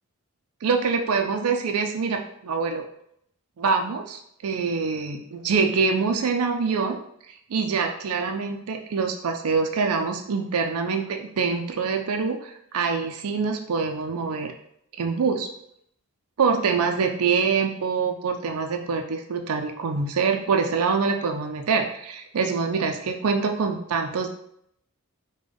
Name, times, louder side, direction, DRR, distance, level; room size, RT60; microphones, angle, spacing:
voice 1, 0.6-2.8 3.6-7.0 7.5-14.5 15.0-15.5 16.4-24.3, right 5 dB, 80° right, 4 dB, 0.4 m, -25 dB
5.1 x 2.2 x 3.4 m, 0.72 s
head